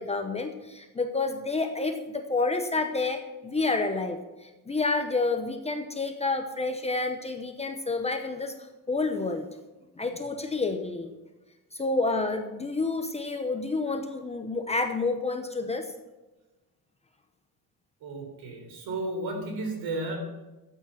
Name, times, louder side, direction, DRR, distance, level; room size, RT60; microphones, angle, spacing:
voice 1, 0.0-8.5 8.9-9.5 10.0-11.2 11.7-15.9, left 3 dB, 15° left, 5 dB, 0.8 m, -29 dB
voice 2, 18.0-20.2, right 2 dB, 65° right, 3 dB, 4.0 m, -33 dB
13.0 x 8.8 x 5.9 m, 1.1 s
cardioid pair, 170°, 39 cm